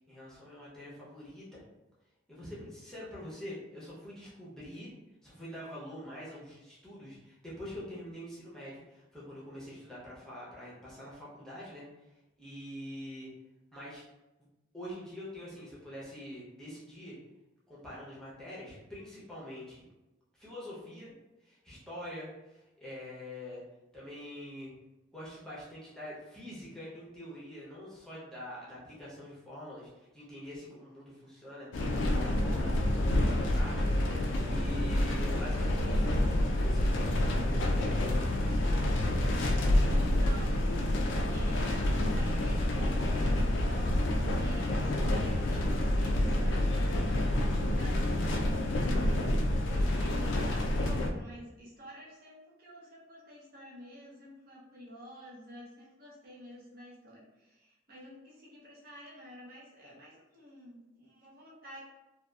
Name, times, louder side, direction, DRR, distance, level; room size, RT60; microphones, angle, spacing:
voice 1, 0.1-1.6 2.3-4.9 5.2-11.9 12.4-13.3 13.7-14.0 14.7-17.2 17.7-19.9 20.3-21.1 21.4-23.6 23.9-24.7 25.1-31.7 32.0-32.8 33.1-34.1 34.4-36.9 37.2-38.8, left 1 dB, 5° left, -8 dB, 0.7 m, -45 dB
sound 1, 31.7-51.1, left 1 dB, 75° left, 0.3 m, -28 dB
voice 2, 40.0-40.7 41.0-44.0 44.3-47.4 47.7-48.7 49.7-61.8, equal, 50° right, -4 dB, 0.6 m, -49 dB
2.7 x 2.3 x 2.3 m, 1.0 s
head